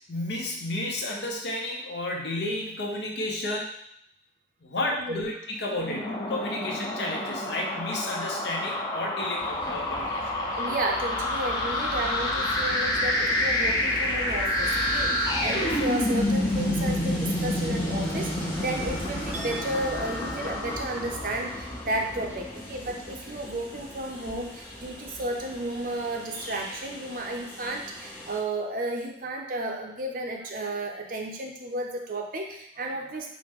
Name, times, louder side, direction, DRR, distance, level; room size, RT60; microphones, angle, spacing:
voice 1, 0.1-3.7 4.6-10.3, left 1 dB, 65° left, 0 dB, 0.7 m, -32 dB
sound 1, 5.7-22.0, left 1 dB, 20° left, 0.5 m, -28 dB
Train, 9.4-28.4, equal, 45° left, 1.1 m, -39 dB
voice 2, 10.6-33.3, right 1 dB, 50° right, 2 dB, 0.5 m, -33 dB
Chink clink, 19.3-25.3 25.6-26.0, left 2 dB, 10° right, 0.8 m, -46 dB
4.8 x 2.1 x 3.5 m, 0.72 s
head